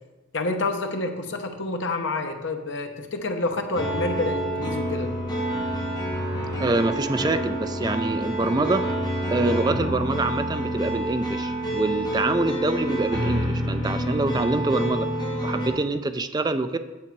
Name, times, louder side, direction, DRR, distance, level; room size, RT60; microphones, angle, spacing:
voice 1, 0.3-5.1, left 2 dB, 65° left, 5 dB, 1.0 m, -28 dB
sound 1, 3.7-15.7, right 1 dB, 25° left, 1.9 m, -28 dB
voice 2, 6.6-8.9 9.3-15.1 15.4-16.8, right 2 dB, 20° right, 9 dB, 0.4 m, -25 dB
8.7 x 7.0 x 4.6 m, 1.2 s
head